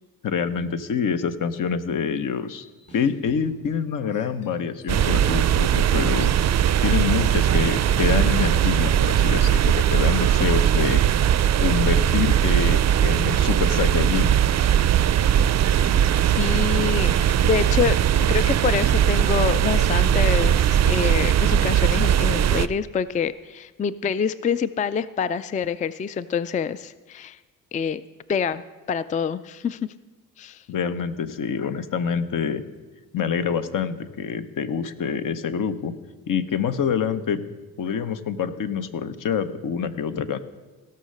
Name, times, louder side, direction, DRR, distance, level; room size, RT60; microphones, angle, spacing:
voice 1, 0.2-2.6 2.9-6.3 6.8-11.0 11.6-14.4 30.7-32.6 33.1-35.9 36.3-37.4 37.8-40.4, left 7 dB, 65° left, 11 dB, 0.9 m, -26 dB
sound 1, 2.5-5.2 5.6-6.2 7.1-11.5 11.7-11.9 12.5-13.7 14.1-17.8, left 2 dB, 40° left, 3.6 m, -51 dB
sound 2, 4.9-22.7, right 10 dB, 50° right, 0.5 m, -19 dB
sound 3, 10.3-22.6, left 2 dB, 80° left, 2.5 m, -49 dB
voice 2, 16.3-27.4 27.7-28.0 28.3-28.6 28.9-29.8 30.4-30.6, left 7 dB, 25° left, 15 dB, 0.3 m, -26 dB
16.5 x 5.7 x 6.5 m, 1.3 s
cardioid pair, 70°, 35 cm